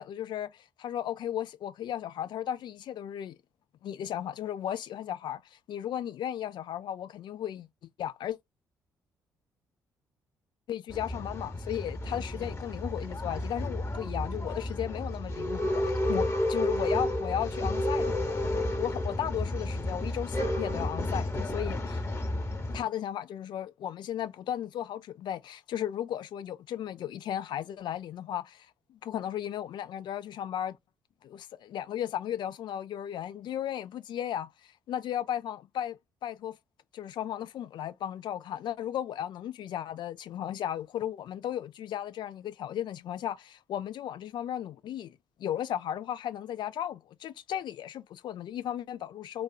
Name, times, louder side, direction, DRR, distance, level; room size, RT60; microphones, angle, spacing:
voice 1, 0.0-3.4 3.8-7.7 8.0-8.4 10.7-18.4 18.8-22.0 22.7-30.8 31.2-34.5 34.9-36.0 36.2-36.5 36.9-49.4, left 10 dB, 55° left, 0.4 m, -35 dB
Male speech man speaking / Chatter / Rattle, 10.9-22.8, left 1 dB, 25° left, 1.1 m, -31 dB
4.2 x 2.3 x 2.3 m
figure-of-eight pair, 45°, 9 cm